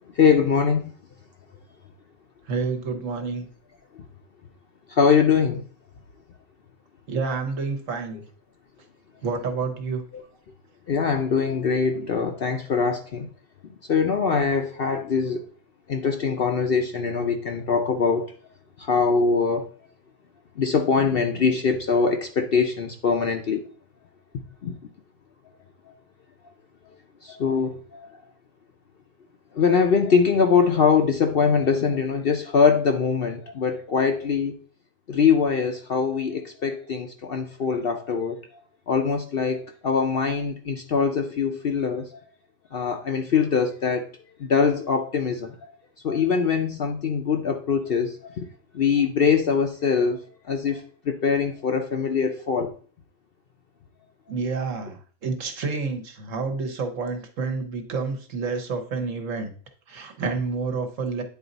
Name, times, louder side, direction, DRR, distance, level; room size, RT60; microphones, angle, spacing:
voice 1, 0.2-0.9 4.9-5.6 10.9-13.3 13.9-15.4 15.9-18.3 18.8-19.7 20.6-23.6 24.6-24.7 27.2-28.1 29.5-34.5 35.1-38.4 38.9-42.1 42.7-44.0 44.4-45.7 46.0-48.5 48.7-50.2 50.5-52.7, left 5 dB, 55° left, 5 dB, 0.7 m, -22 dB
voice 2, 2.5-3.5 7.1-8.2 9.2-10.0 54.3-59.5 59.9-61.2, right 4 dB, 65° right, 6 dB, 1.4 m, -29 dB
9.3 x 4.1 x 4.0 m, 0.43 s
omnidirectional pair, 1.5 m